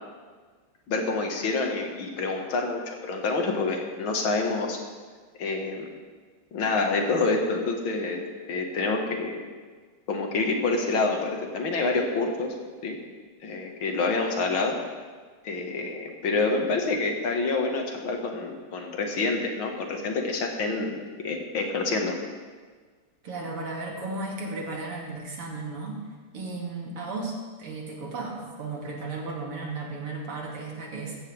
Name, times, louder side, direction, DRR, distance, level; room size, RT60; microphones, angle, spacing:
voice 1, 0.9-4.8 5.4-5.9 6.5-8.2 8.5-9.4 10.1-12.6 12.8-13.0 13.4-14.8 15.4-21.0 21.2-22.1, left 3 dB, 65° left, 2 dB, 2.3 m, -27 dB
voice 2, 23.2-26.0 26.3-31.2, right 3 dB, 80° right, -1 dB, 3.2 m, -35 dB
15.5 x 14.0 x 3.4 m, 1.5 s
omnidirectional pair, 2.4 m